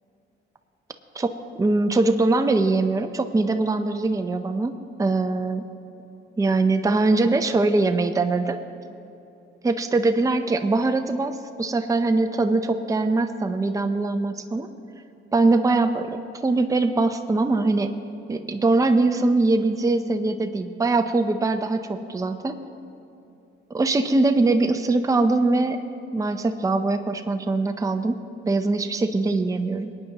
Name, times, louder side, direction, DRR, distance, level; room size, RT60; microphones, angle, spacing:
voice 1, 1.1-5.6 6.4-8.6 9.6-14.7 15.3-17.9 18.3-22.6 23.7-25.8 26.1-29.9, right 3 dB, 15° right, 7 dB, 0.6 m, -22 dB
21.0 x 9.3 x 2.9 m, 2.9 s
cardioid pair, 90°, 20 cm